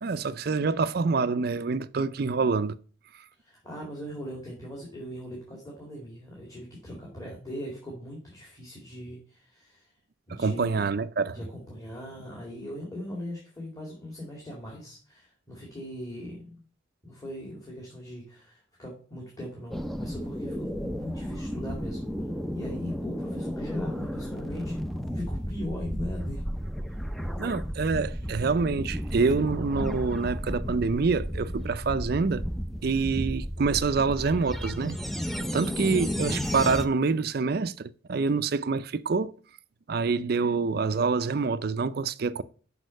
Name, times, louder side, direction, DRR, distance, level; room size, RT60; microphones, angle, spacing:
voice 1, 0.0-2.8 10.3-11.4 27.4-32.4 32.8-35.0 35.5-39.3 39.9-42.4, right 4 dB, 50° right, 0.4 m, -26 dB
voice 2, 3.4-9.9 10.3-10.8 11.3-16.6 17.0-22.0 22.5-26.4 35.4-35.7, left 1 dB, 20° left, 2.2 m, -40 dB
sound 1, 19.7-36.9, equal, ahead, 0.5 m, -33 dB
6.3 x 5.6 x 6.4 m
head